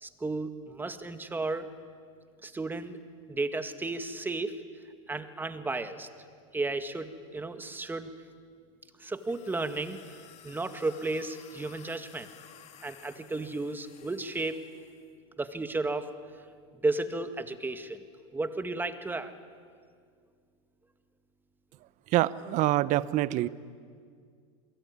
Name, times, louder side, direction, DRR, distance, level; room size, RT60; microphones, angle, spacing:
voice 1, 0.0-1.7 2.4-3.0 3.3-4.5 5.1-6.1 6.5-8.1 9.0-10.0 10.4-12.3 12.8-14.6 15.4-16.1 16.8-18.0 18.3-19.3, right 2 dB, 10° right, 9 dB, 1.9 m, -33 dB
sound 1, 9.1-15.1, left 9 dB, 40° left, 2.8 m, -54 dB
voice 2, 22.1-23.5, right 16 dB, 45° right, 17 dB, 1.0 m, -26 dB
28.0 x 22.5 x 9.6 m, 2.1 s
hypercardioid pair, 105°, 17 cm